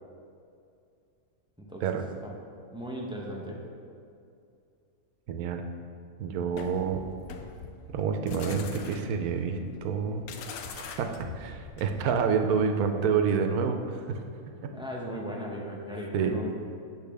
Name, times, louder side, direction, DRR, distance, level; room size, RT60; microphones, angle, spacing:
voice 1, 1.6-2.3 2.7-3.6 14.7-16.6, equal, 5° right, -2 dB, 0.5 m, -37 dB
voice 2, 5.3-5.6 6.2-7.0 7.9-10.3 10.8-14.2 14.6-14.7 16.1-16.4, right 6 dB, 90° right, 6 dB, 1.1 m, -28 dB
sound 1, 6.5-12.2, left 6 dB, 85° left, 1.1 m, -43 dB
8.3 x 6.4 x 3.4 m, 2.5 s
omnidirectional pair, 1.5 m